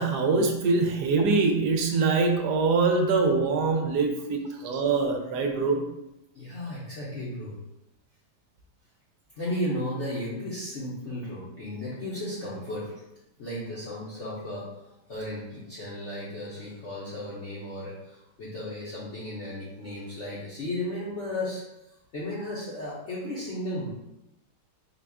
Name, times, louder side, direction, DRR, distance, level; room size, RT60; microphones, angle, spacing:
voice 1, 0.0-5.9, right 4 dB, 75° right, 3 dB, 1.1 m, -24 dB
voice 2, 6.3-7.5 9.4-12.9 13.4-14.7 15.1-21.6 22.1-23.9, left 1 dB, 55° left, -7 dB, 0.9 m, -34 dB
3.9 x 2.3 x 3.5 m, 0.90 s
omnidirectional pair, 1.9 m